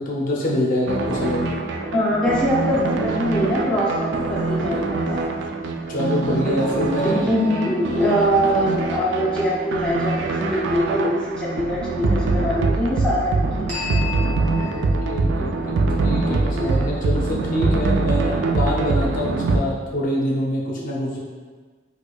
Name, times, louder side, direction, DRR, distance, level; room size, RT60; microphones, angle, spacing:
voice 1, 0.0-1.6 5.9-7.3 14.7-21.2, left 1 dB, 50° left, -4 dB, 0.5 m, -25 dB
sound 1, 0.9-19.6, right 3 dB, 70° right, 0.3 m, -24 dB
voice 2, 1.9-5.2 7.0-14.0 16.5-17.0 20.8-20.9, equal, 5° left, -7 dB, 0.6 m, -23 dB
sound 2, 6.6-9.4 13.7-17.2, left 3 dB, 40° right, 0.9 m, -37 dB
4.5 x 2.5 x 2.3 m, 1.4 s
head